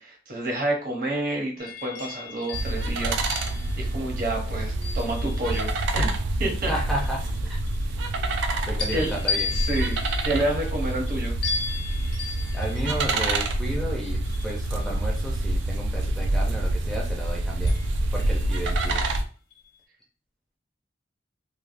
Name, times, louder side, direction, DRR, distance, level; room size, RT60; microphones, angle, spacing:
voice 1, 0.0-6.1 6.4-6.7 7.8-7.9 8.9-9.1 9.5-11.3, right 1 dB, 50° right, 0 dB, 0.8 m, -29 dB
sound 1, 1.6-5.9 6.5-8.4 8.8-15.7 17.6-19.1 19.5-19.8, left 5 dB, 75° left, 0.7 m, -37 dB
sound 2, 2.5-19.2, right 2 dB, 80° right, 0.4 m, -27 dB
voice 2, 6.7-7.6 8.7-9.5 12.5-17.8 18.1-19.0, right 1 dB, ahead, -2 dB, 0.4 m, -33 dB
3.2 x 2.1 x 2.4 m, 0.39 s
head